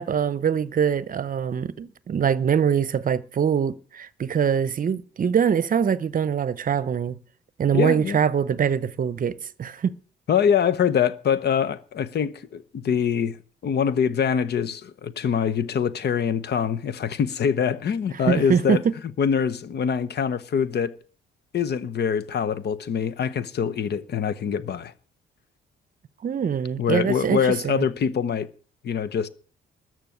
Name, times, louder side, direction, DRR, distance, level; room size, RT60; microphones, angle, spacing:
voice 1, 0.0-7.1 7.6-9.9 18.3-18.8 26.2-27.8, right 7 dB, 45° right, 0.8 m, -23 dB
voice 2, 7.7-8.2 10.3-13.4 13.6-18.8 19.2-20.9 21.5-24.9 26.8-28.5 28.8-29.3, left 7 dB, 55° left, 1.0 m, -24 dB
13.5 x 6.2 x 9.4 m
cardioid pair, 90°, 20 cm